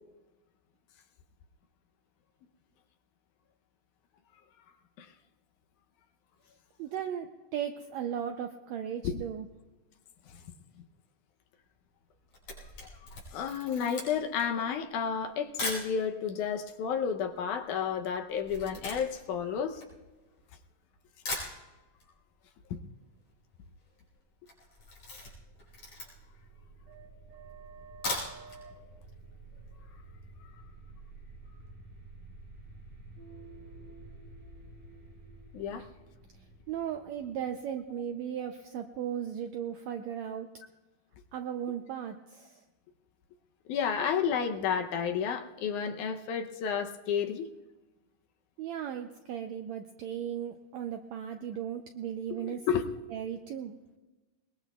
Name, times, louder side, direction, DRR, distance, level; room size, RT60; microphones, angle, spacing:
voice 1, 6.8-9.5 36.7-40.5 41.3-42.6 48.6-52.6 53.1-53.7, right 9 dB, 80° right, 6 dB, 1.6 m, -36 dB
Camera, 12.1-15.9 16.6-16.7 16.9-20.6 21.0-21.1 21.3-22.1 22.4-22.5 22.8-22.9 23.0-23.5 23.8-24.0 24.4-26.4 26.9-27.0 27.8-28.6 29.0-29.1 29.4-29.5, left 2 dB, 45° left, 5.7 m, -39 dB
voice 2, 13.3-19.8 22.7-22.8 35.5-35.9 43.7-47.5 52.3-52.9, left 7 dB, 75° left, 5 dB, 2.1 m, -31 dB
sound 1, 24.8-38.5, right 3 dB, 50° right, 7.9 m, -51 dB
22.5 x 21.0 x 2.3 m, 1.2 s
omnidirectional pair, 3.8 m